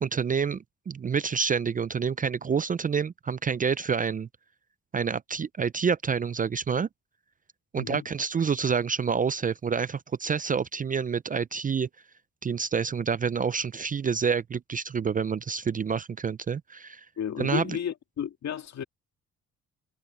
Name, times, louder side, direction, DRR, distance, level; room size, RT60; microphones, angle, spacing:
voice 1, 0.0-4.3 4.9-6.9 7.7-11.9 12.4-17.0 17.4-17.6, right 6 dB, 30° right, 0.4 m, -28 dB
voice 2, 7.7-8.1 17.2-18.8, left 9 dB, 60° left, 2.3 m, -32 dB
cardioid pair, 90°, 30 cm